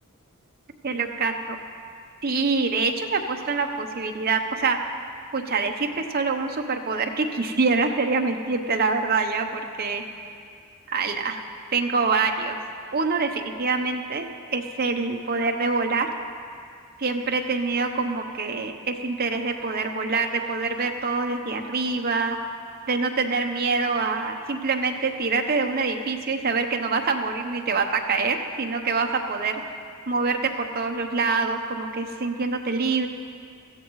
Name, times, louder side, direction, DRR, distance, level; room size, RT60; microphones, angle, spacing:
voice 1, 0.8-1.6 2.2-4.8 5.3-10.0 10.9-11.4 11.7-12.6 12.9-16.1 17.0-22.4 22.9-29.6 30.1-33.1, right 4 dB, 45° right, 4 dB, 0.8 m, -25 dB
16.5 x 13.5 x 3.2 m, 2.3 s
head